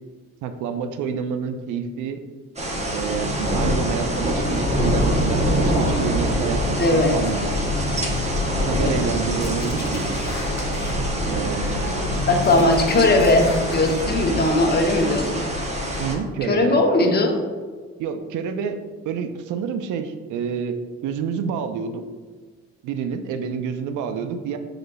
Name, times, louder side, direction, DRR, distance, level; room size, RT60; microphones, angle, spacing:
voice 1, 0.4-2.2 2.9-7.5 8.6-10.1 11.3-12.3 16.0-16.8 18.0-22.0 22.8-24.6, right 6 dB, 80° right, 9 dB, 0.5 m, -28 dB
sound 1, 2.6-16.1, equal, 20° right, 0.8 m, -24 dB
voice 2, 6.8-7.2 8.8-9.0 12.3-15.4 16.4-17.4, left 2 dB, 35° left, 2 dB, 0.8 m, -19 dB
sound 2, 9.4-10.9 11.2-12.2 12.4-14.0 14.4-15.3, left 3 dB, 65° left, 1.2 m, -38 dB
4.9 x 3.8 x 2.2 m, 1.4 s
cardioid pair, 90°, 30 cm